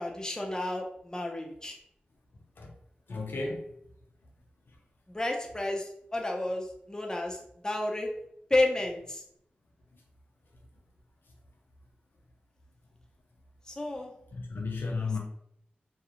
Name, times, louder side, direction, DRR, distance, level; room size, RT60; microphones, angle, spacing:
voice 1, 0.0-1.8 5.1-7.4 7.6-8.1 8.5-9.2 13.7-14.1 15.0-15.2, left 2 dB, 20° left, 1 dB, 0.5 m, -31 dB
voice 2, 3.1-3.6 14.3-15.2, left 3 dB, 75° left, 1 dB, 0.5 m, -33 dB
2.4 x 2.0 x 2.8 m, 0.73 s
cardioid pair, 45°, 4 cm